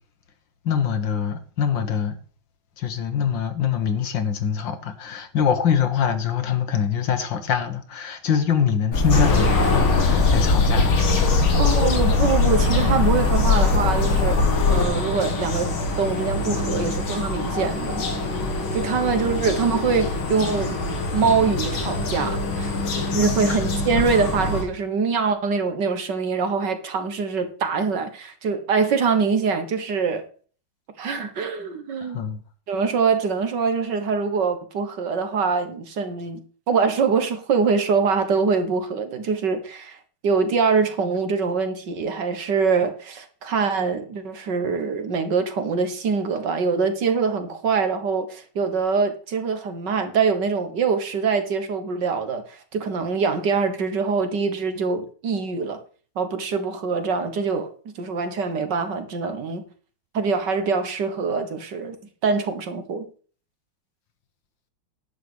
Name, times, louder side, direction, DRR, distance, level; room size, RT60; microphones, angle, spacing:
voice 1, 0.6-2.2 2.8-11.4 22.7-23.2 23.5-23.7 32.0-32.4, left 7 dB, 70° left, 2.0 m, -24 dB
sound 1, 8.9-14.9, left 4 dB, 45° left, 2.0 m, -20 dB
sound 2, 9.1-24.6, left 2 dB, 85° left, 2.9 m, -25 dB
voice 2, 11.6-14.4 14.7-18.1 18.7-20.8 21.1-22.7 23.1-30.2 31.0-32.2 32.7-40.0 40.2-55.8 56.2-57.7 58.0-59.7 60.1-62.0 62.2-63.1, right 5 dB, 60° right, 1.9 m, -24 dB
11.0 x 5.0 x 8.1 m
omnidirectional pair, 2.2 m